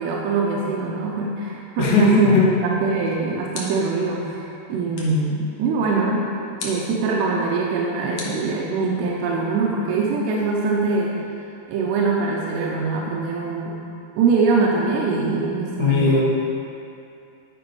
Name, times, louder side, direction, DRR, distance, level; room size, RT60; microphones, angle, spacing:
voice 1, 0.0-2.3 2.6-6.3 6.6-11.2 11.7-13.7 14.2-16.2, right 4 dB, 90° right, -2 dB, 2.8 m, -23 dB
voice 2, 1.8-2.5 15.8-16.2, left 2 dB, 85° left, -4 dB, 3.7 m, -17 dB
sound 1, 3.5-4.0 4.9-5.3 6.6-6.9 8.2-9.0, left 2 dB, 65° left, 1.8 m, -36 dB
11.5 x 5.2 x 4.7 m, 2.6 s
omnidirectional pair, 4.9 m